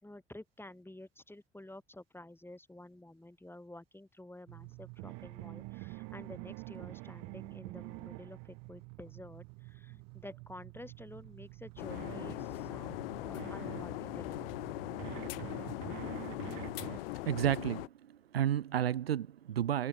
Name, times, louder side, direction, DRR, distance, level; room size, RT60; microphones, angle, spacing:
voice 1, 0.0-14.5, left 1 dB, 5° left, 5.1 m, -51 dB
sound 1, 4.5-17.0, right 31 dB, 65° right, 5.3 m, -47 dB
sound 2, 11.8-17.9, left 20 dB, 70° left, 0.8 m, -40 dB
voice 2, 17.3-17.9 18.3-19.9, right 10 dB, 85° right, 0.7 m, -31 dB
figure-of-eight pair, 55°, 30 cm